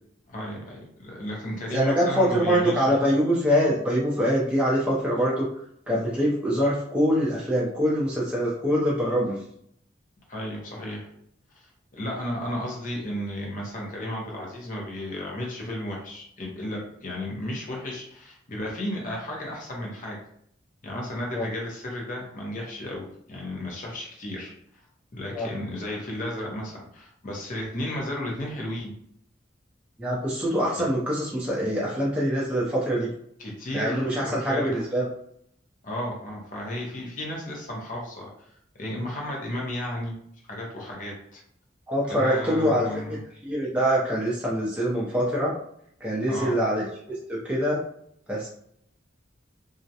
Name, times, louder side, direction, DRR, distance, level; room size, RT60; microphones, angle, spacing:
voice 1, 0.3-3.2 10.3-11.1 11.9-20.2 20.8-24.5 25.1-29.0 30.7-30.9 33.4-34.8 35.8-38.3 38.7-40.2 40.5-41.4 42.1-43.2 46.3-46.6, left 1 dB, 40° left, -2 dB, 0.7 m, -33 dB
voice 2, 1.7-5.5 5.9-9.4 21.3-21.5 25.3-25.5 30.0-33.1 33.7-35.1 41.9-43.2 43.4-45.5 46.0-46.9 47.3-47.8 48.3-48.5, equal, 5° right, -6 dB, 0.5 m, -24 dB
2.4 x 2.1 x 2.7 m, 0.70 s
head